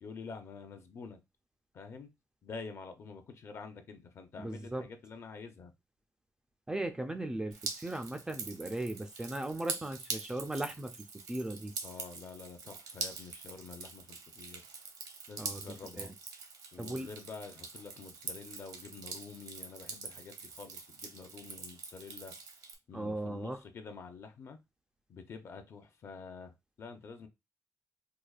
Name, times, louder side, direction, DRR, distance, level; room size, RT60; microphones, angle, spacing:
voice 1, 0.0-1.2 1.7-2.1 2.4-5.7 11.8-14.6 15.3-16.1 16.7-22.3 22.9-24.6 25.1-27.3, left 5 dB, 45° left, 0.6 m, -48 dB
voice 2, 4.4-4.9 6.7-7.6 7.8-11.7 15.4-16.1 16.8-17.1 22.9-23.6, right 1 dB, 10° right, 0.3 m, -37 dB
Drip, 7.5-22.8, right 5 dB, 80° right, 0.8 m, -44 dB
4.8 x 2.3 x 2.3 m
wide cardioid pair, 180°, 6 cm